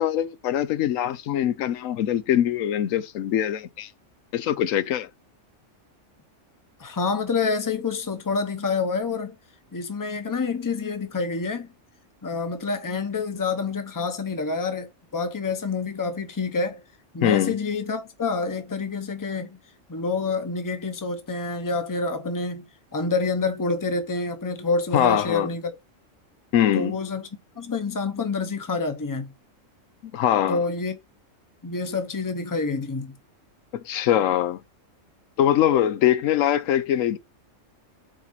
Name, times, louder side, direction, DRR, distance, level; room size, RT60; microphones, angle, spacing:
voice 1, 0.0-3.9 4.3-5.1 17.2-17.6 24.9-25.5 26.5-27.0 30.0-30.6 33.7-34.6 35.4-37.2, left 11 dB, 90° left, 1.0 m, -22 dB
voice 2, 6.8-9.4 9.7-11.7 12.2-16.8 17.1-19.6 19.9-22.6 22.9-25.7 26.7-27.3 27.6-29.3 30.5-31.0 31.6-33.1, left 4 dB, 20° left, 0.7 m, -27 dB
5.0 x 4.1 x 5.9 m
omnidirectional pair, 1.3 m